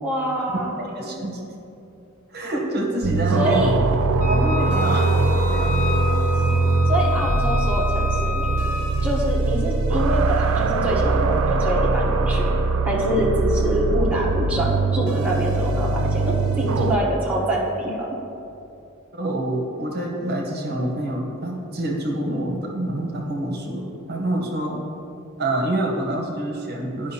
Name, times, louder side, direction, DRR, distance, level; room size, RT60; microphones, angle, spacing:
voice 1, 0.0-0.7 1.1-1.2 3.3-3.8 6.9-8.6 9.0-12.5 12.8-18.1, right 1 dB, 5° right, -5 dB, 0.8 m, -25 dB
voice 2, 0.8-1.5 2.3-3.7 4.3-5.2 5.5-5.8 19.1-24.8 25.4-27.1, right 1 dB, 45° right, 0 dB, 0.9 m, -26 dB
sound 1, 3.0-17.0, right 3 dB, 70° right, 0.4 m, -21 dB
Wind instrument woodwind instrument, 4.2-8.9, left 4 dB, 35° left, 1.1 m, -30 dB
11.0 x 5.2 x 2.8 m, 2.8 s
head